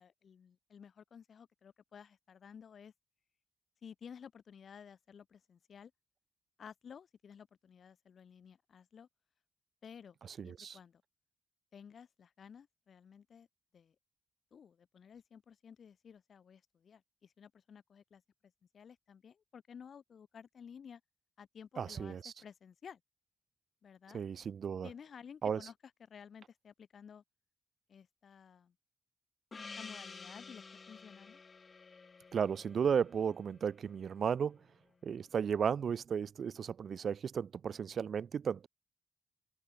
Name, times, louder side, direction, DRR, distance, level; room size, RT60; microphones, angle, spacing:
voice 1, 0.0-2.9 3.8-5.9 6.6-9.1 9.8-10.2 10.4-11.0 11.7-13.5 13.7-14.0 14.5-18.2 18.7-21.0 21.4-23.0 23.8-24.2 24.8-27.2 27.9-28.7 29.8-31.4, left 7 dB, 65° left, 3.6 m, -54 dB
voice 2, 10.4-10.8 21.8-22.3 24.1-24.9 25.4-25.6 32.3-34.6 35.0-38.7, right 7 dB, 65° right, 1.9 m, -34 dB
Gong, 29.5-34.3, left 4 dB, 45° left, 2.8 m, -51 dB
open air
supercardioid pair, 50°, 0 cm